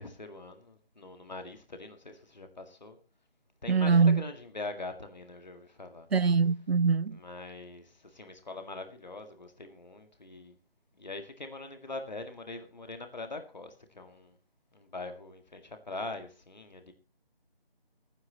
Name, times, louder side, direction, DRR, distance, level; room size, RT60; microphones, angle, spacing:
voice 1, 0.0-3.0 3.6-6.1 7.1-10.6 11.0-14.4 14.7-16.9, left 2 dB, 45° left, 1.9 m, -43 dB
voice 2, 3.7-4.2 6.1-7.2, right 5 dB, 85° right, 0.6 m, -23 dB
23.0 x 9.6 x 2.9 m
figure-of-eight pair, 160°, 30 cm